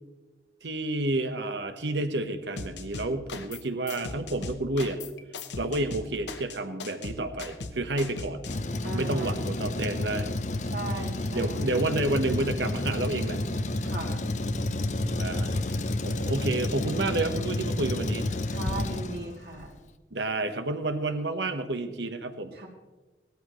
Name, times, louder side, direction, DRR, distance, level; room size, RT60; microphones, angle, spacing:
voice 1, 0.6-5.0 5.6-8.4 8.9-10.3 11.3-13.4 15.2-15.6 16.0-18.3 20.1-22.5, right 2 dB, 80° right, 8 dB, 1.3 m, -30 dB
sound 1, 2.6-3.6 3.9-8.6, left 3 dB, 80° left, 1.0 m, -38 dB
Truck, 8.4-19.6, left 2 dB, 40° left, 0.6 m, -30 dB
voice 2, 8.8-9.5 10.6-11.7 13.8-14.3 18.5-19.7 22.5-22.7, right 2 dB, 60° right, 0 dB, 2.8 m, -38 dB
17.5 x 13.5 x 3.2 m, 1.2 s
head